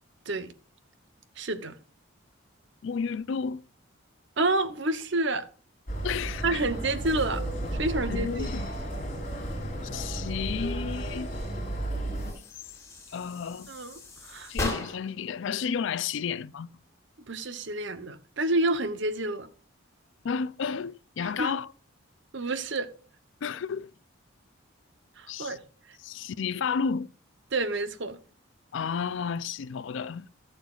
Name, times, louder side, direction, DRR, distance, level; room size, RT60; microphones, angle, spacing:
voice 1, 1.4-1.8 4.4-5.5 6.4-7.4 7.7-8.5 13.7-13.9 14.2-14.5 17.3-19.5 21.2-21.5 22.3-22.9 25.2-25.6 25.9-26.0 27.5-28.2, right 2 dB, 60° right, 0.8 m, -29 dB
voice 2, 2.8-3.6 6.0-6.6 8.1-8.7 9.9-11.3 13.1-13.7 14.5-16.7 20.2-21.7 23.4-23.9 25.3-25.6 26.0-27.1 28.7-30.3, left 6 dB, 65° left, 0.4 m, -32 dB
sound 1, 5.9-12.3, right 1 dB, 40° left, 3.5 m, -33 dB
sound 2, 12.1-15.2, left 2 dB, 15° left, 3.2 m, -37 dB
15.5 x 6.6 x 2.4 m
head